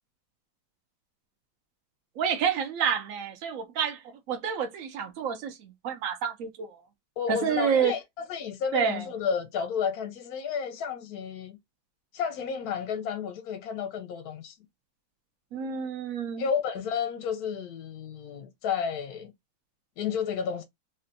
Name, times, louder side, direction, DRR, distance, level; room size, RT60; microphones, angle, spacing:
voice 1, 2.2-4.0 4.3-6.8 7.3-7.9 8.7-9.1 15.5-16.4, right 7 dB, 75° right, 0.7 m, -29 dB
voice 2, 7.2-11.6 12.1-14.5 16.4-19.3 20.0-20.6, left 7 dB, 70° left, 0.9 m, -31 dB
3.2 x 2.7 x 2.5 m
omnidirectional pair, 2.0 m